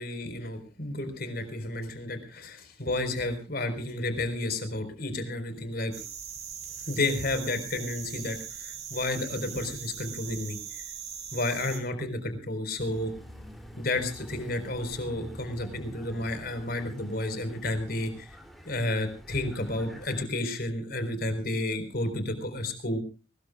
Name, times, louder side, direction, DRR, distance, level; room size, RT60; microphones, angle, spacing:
voice 1, 0.0-5.9 6.9-10.8 11.3-13.1 13.8-18.4 18.6-23.0, left 2 dB, 50° left, 8 dB, 4.4 m, -31 dB
sound 1, 5.9-11.8, right 8 dB, 55° right, 5.6 m, -40 dB
sound 2, 12.8-20.3, equal, ahead, 3.0 m, -47 dB
23.0 x 20.5 x 2.4 m, 0.34 s
head